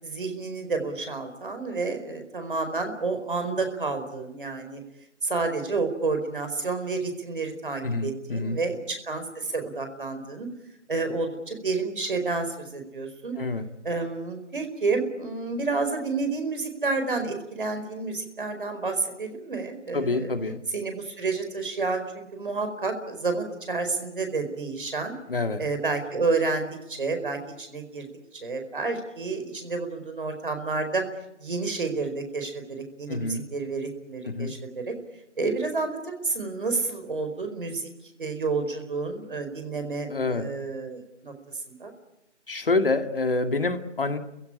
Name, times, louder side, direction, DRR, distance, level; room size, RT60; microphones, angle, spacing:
voice 1, 0.0-4.8 5.2-10.5 10.9-13.4 13.8-20.3 20.7-25.1 25.6-28.1 28.3-31.0 31.4-34.9 35.4-41.3 41.7-41.9, right 3 dB, 45° right, 6 dB, 4.7 m, -30 dB
voice 2, 7.8-8.6 13.4-13.7 19.9-20.6 25.3-25.6 33.1-33.4 34.3-34.5 40.1-40.4 42.5-44.2, left 3 dB, 50° left, 8 dB, 2.2 m, -27 dB
29.0 x 16.0 x 10.0 m, 0.87 s
hypercardioid pair, 175°, 35 cm